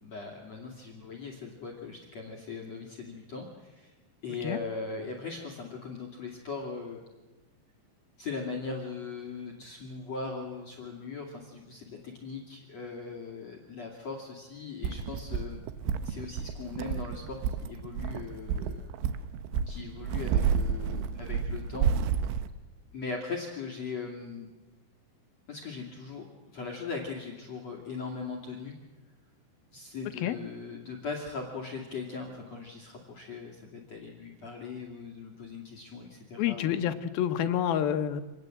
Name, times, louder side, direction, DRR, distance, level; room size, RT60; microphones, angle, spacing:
voice 1, 0.0-3.9 4.2-7.0 8.2-15.6 16.0-18.8 19.6-21.9 22.9-24.5 25.5-28.8 29.7-36.9, left 4 dB, 40° left, 0 dB, 3.2 m, -39 dB
sound 1, 14.8-22.5, right 7 dB, 80° right, 3.3 m, -31 dB
voice 2, 36.4-38.2, left 10 dB, 70° left, 9 dB, 2.4 m, -28 dB
27.5 x 19.5 x 7.9 m, 1.2 s
omnidirectional pair, 5.3 m